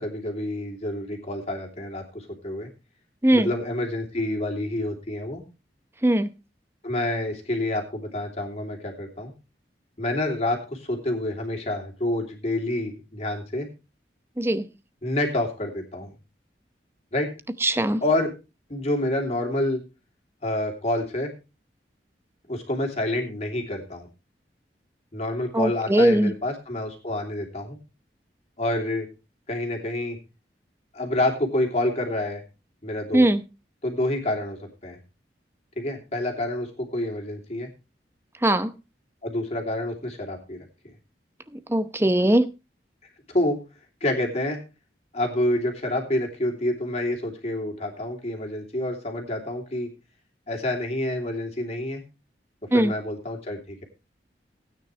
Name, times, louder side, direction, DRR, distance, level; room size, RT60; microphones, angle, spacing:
voice 1, 0.0-2.7 3.3-5.4 6.8-9.3 10.0-13.7 15.0-16.1 17.1-17.3 18.0-18.3 18.7-19.8 20.4-21.3 22.5-24.1 25.1-27.8 28.6-29.1 29.5-30.2 30.9-32.4 32.8-33.2 33.8-35.0 35.8-37.7 39.2-40.7 43.3-43.6 44.0-44.6 45.1-49.9 50.5-52.0 52.7-53.8, left 1 dB, 40° left, 1 dB, 3.0 m, -28 dB
voice 2, 17.6-18.0 25.5-26.3 33.1-33.4 38.4-38.7 41.7-42.5 52.7-52.9, right 1 dB, 15° right, 12 dB, 0.7 m, -20 dB
17.5 x 9.4 x 3.2 m, 0.29 s
head